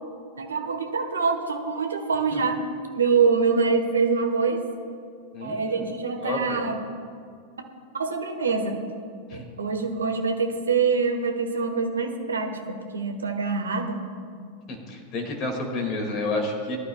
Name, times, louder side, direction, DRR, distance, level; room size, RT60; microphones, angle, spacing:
voice 1, 0.3-2.6 2.9-4.6 5.4-6.8 8.0-8.8 9.3-14.0, right 5 dB, 70° right, 5 dB, 1.2 m, -25 dB
voice 2, 5.3-5.9 6.2-6.6 9.3-9.4 14.7-16.8, left 2 dB, 35° left, 3 dB, 2.1 m, -30 dB
19.5 x 11.0 x 2.3 m, 2.1 s
figure-of-eight pair, 90°, 0 cm